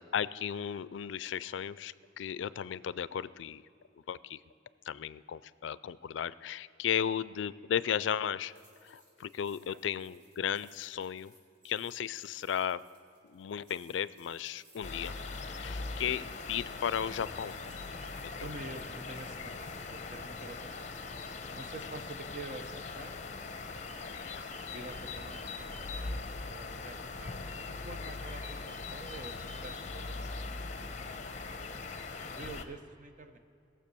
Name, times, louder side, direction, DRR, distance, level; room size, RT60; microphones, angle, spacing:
voice 1, 0.0-3.6 4.1-4.4 4.9-8.5 8.8-11.3 11.6-12.8 13.2-15.1 15.6-17.6 18.4-18.5 24.1-24.8, left 8 dB, 80° left, 18 dB, 0.4 m, -35 dB
sound 1, 8.5-19.8, right 1 dB, 80° right, 4.0 m, -64 dB
sound 2, 14.8-32.6, left 3 dB, 40° left, 0.8 m, -41 dB
voice 2, 18.4-19.6 19.9-20.9 21.5-23.5 24.7-31.5 32.3-33.4, right 2 dB, 45° right, 7 dB, 0.9 m, -48 dB
18.5 x 7.3 x 6.8 m, 2.6 s
head